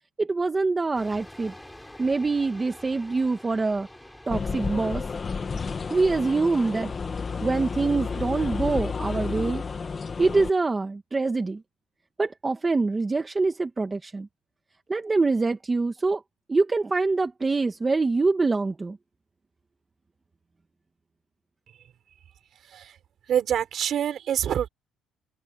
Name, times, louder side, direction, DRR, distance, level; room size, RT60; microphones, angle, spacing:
voice 1, 0.2-1.5 2.0-3.9 4.3-5.0 5.9-6.9 7.4-9.6 10.2-11.6 12.2-14.3 14.9-16.2 16.5-19.0, right 3 dB, 15° right, 1.5 m, -25 dB
sound 1, 0.9-8.2, left 1 dB, 5° left, 6.9 m, -48 dB
sound 2, 4.3-10.5, left 5 dB, 25° left, 1.5 m, -31 dB
voice 2, 23.3-24.7, right 9 dB, 45° right, 5.9 m, -26 dB
cardioid pair, 150°, 0 cm